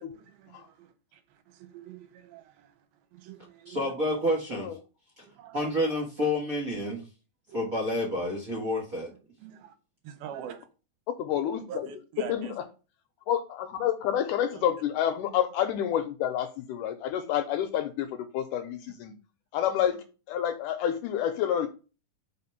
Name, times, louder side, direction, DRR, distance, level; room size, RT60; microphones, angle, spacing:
voice 1, 0.0-2.9 3.1-3.9 5.2-5.7 7.5-7.6 9.4-9.7 10.0-10.7 11.7-12.5 14.5-14.6, right 9 dB, 85° right, 2.8 m, -45 dB
voice 2, 3.7-4.7 5.2-5.3 5.5-7.0 7.5-9.1, left 1 dB, 55° right, 0.9 m, -29 dB
voice 3, 11.2-11.9 12.3-12.5 13.3-19.1 19.5-20.0 20.3-21.7, left 10 dB, 80° left, 1.9 m, -28 dB
5.1 x 4.2 x 5.7 m
omnidirectional pair, 4.1 m